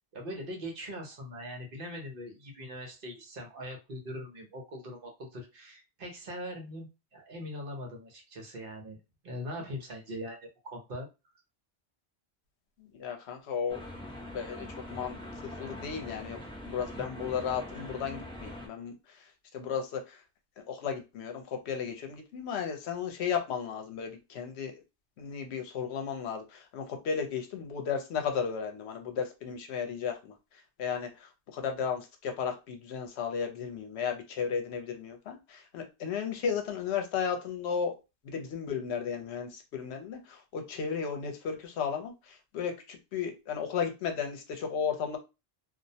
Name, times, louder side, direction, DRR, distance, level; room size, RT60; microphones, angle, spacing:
voice 1, 0.1-9.0 9.2-11.1, equal, 60° right, 1 dB, 0.9 m, -41 dB
voice 2, 12.9-13.8 14.3-16.4 16.6-19.3 19.5-20.2 20.7-24.8 25.2-30.3 30.8-38.0 38.2-45.2, left 7 dB, 80° left, 5 dB, 0.9 m, -34 dB
sound 1, 13.7-18.7, left 1 dB, 5° left, 0.5 m, -43 dB
2.4 x 2.0 x 2.7 m, 0.27 s
omnidirectional pair, 1.1 m